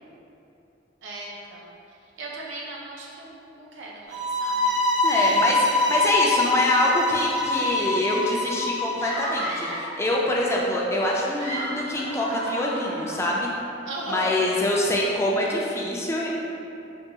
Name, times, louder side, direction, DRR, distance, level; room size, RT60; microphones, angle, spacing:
voice 1, 1.0-1.6 2.2-4.7 5.1-5.6 13.9-14.4, right 2 dB, 90° right, -3 dB, 0.6 m, -37 dB
sound 1, 4.1-9.1, left 2 dB, 40° right, 0.7 m, -24 dB
voice 2, 5.0-13.5 14.1-16.3, left 1 dB, 15° left, -3 dB, 0.3 m, -25 dB
sound 2, 9.0-10.0 11.1-13.5, right 1 dB, 65° right, 1.2 m, -33 dB
3.5 x 2.3 x 2.8 m, 2.7 s
head